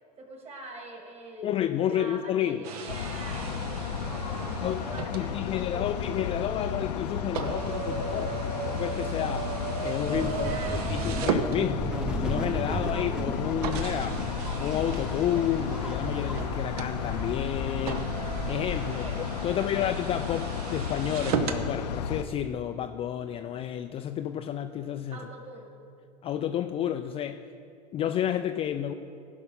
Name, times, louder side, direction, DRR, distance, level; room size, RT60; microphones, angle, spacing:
voice 1, 0.2-1.5 1.9-5.9 10.1-11.1 18.9-19.2 19.5-19.9 25.1-25.7, right 2 dB, 30° right, 2 dB, 2.4 m, -44 dB
voice 2, 1.4-2.6 4.6-4.8 5.1-11.9 12.2-14.2 14.6-18.1 18.5-19.1 19.4-25.2 26.2-27.4 27.9-28.9, left 10 dB, 25° left, 8 dB, 0.4 m, -31 dB
sound 1, 2.6-12.1 12.8-12.9 13.6-21.7, right 6 dB, 60° right, 0.9 m, -36 dB
sound 2, 2.9-22.2, left 7 dB, 75° left, 0.6 m, -34 dB
sound 3, 10.0-18.7, equal, 5° right, 0.9 m, -35 dB
16.0 x 5.4 x 5.6 m, 2.5 s
hypercardioid pair, 90°, 21 cm